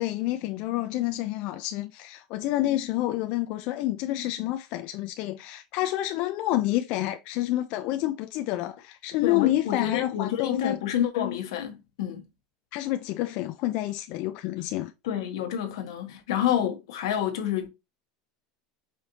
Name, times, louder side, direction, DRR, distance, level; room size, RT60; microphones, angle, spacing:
voice 1, 0.0-10.8 12.7-14.9, left 15 dB, 50° left, 0.4 m, -28 dB
voice 2, 9.2-12.3 15.0-17.7, left 10 dB, 90° left, 1.1 m, -28 dB
4.9 x 2.6 x 2.9 m
supercardioid pair, 155°, 2 cm